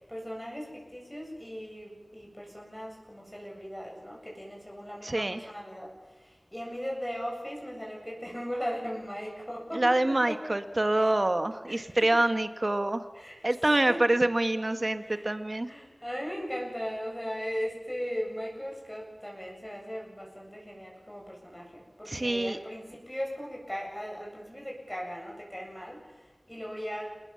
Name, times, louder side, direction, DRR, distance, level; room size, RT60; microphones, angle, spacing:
voice 1, 0.0-5.9 6.5-10.0 10.3-10.4 11.7-11.9 13.1-13.3 13.9-14.0 15.0-15.4 15.6-26.0 26.5-27.1, equal, 15° left, -2 dB, 7.6 m, -38 dB
voice 2, 5.0-5.5 9.7-13.1 13.4-15.7 22.1-22.6, right 1 dB, 50° right, 9 dB, 1.6 m, -26 dB
28.0 x 20.5 x 7.2 m, 1.1 s
wide cardioid pair, 45°, 0 cm